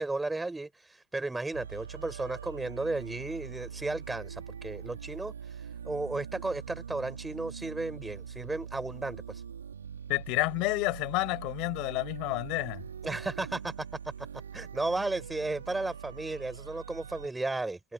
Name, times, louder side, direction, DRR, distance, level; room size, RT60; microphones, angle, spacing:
voice 1, 0.0-9.4 13.0-13.9 14.5-17.8, right 2 dB, 10° right, 7.4 m, -34 dB
sound 1, 1.5-17.3, right 7 dB, 75° right, 4.5 m, -43 dB
voice 2, 10.1-12.8, left 25 dB, 50° left, 6.4 m, -30 dB
figure-of-eight pair, 75°, 0 cm